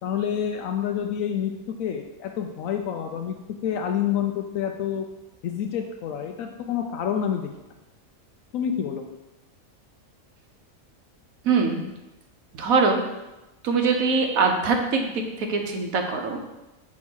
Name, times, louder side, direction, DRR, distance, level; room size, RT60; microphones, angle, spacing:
voice 1, 0.0-1.5 1.8-3.4 3.6-5.1 5.4-7.5 8.5-9.0, left 9 dB, 80° left, 4 dB, 1.0 m, -28 dB
voice 2, 11.4-11.8 12.5-13.0 13.6-16.4, right 4 dB, 85° right, 3 dB, 1.4 m, -23 dB
6.1 x 3.8 x 6.1 m, 1.0 s
omnidirectional pair, 1.4 m